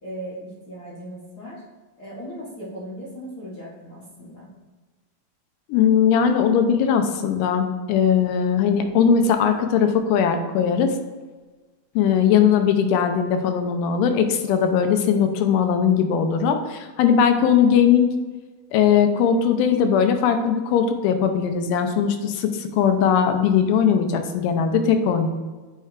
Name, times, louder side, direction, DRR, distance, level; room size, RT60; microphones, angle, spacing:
voice 1, 0.0-1.6 2.0-4.5, equal, 65° left, -8 dB, 0.9 m, -37 dB
voice 2, 5.7-11.0 12.0-18.1 18.7-25.3, left 7 dB, 85° left, 6 dB, 2.2 m, -19 dB
8.9 x 4.5 x 2.4 m, 1.3 s
omnidirectional pair, 3.8 m